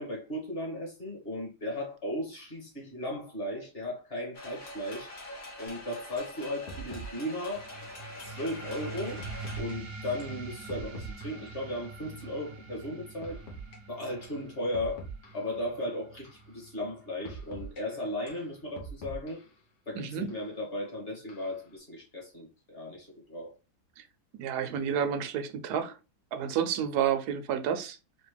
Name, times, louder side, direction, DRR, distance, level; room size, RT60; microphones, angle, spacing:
voice 1, 0.0-5.1 5.6-7.7 8.2-9.2 9.6-13.4 13.9-15.0 15.3-19.4 19.9-23.6, left 1 dB, 35° left, 1.9 m, -36 dB
sound 1, 4.3-9.6, left 1 dB, 55° left, 1.7 m, -44 dB
sound 2, 5.7-5.8 6.2-6.4 6.7-7.4 8.2-8.4 9.2-9.7 10.2-11.6 12.2-12.4 13.2-13.8 14.2-14.4 14.7-15.6 16.2-16.5 17.2-17.8 18.3-19.6 20.3-20.4 21.3-21.7, right 3 dB, 85° left, 1.7 m, -44 dB
sound 3, 7.6-18.6, right 3 dB, 50° right, 0.7 m, -45 dB
voice 2, 19.9-20.3 24.0-24.1 24.3-26.0 26.3-28.0, right 8 dB, 75° right, 1.2 m, -30 dB
4.2 x 2.9 x 3.2 m
omnidirectional pair, 1.7 m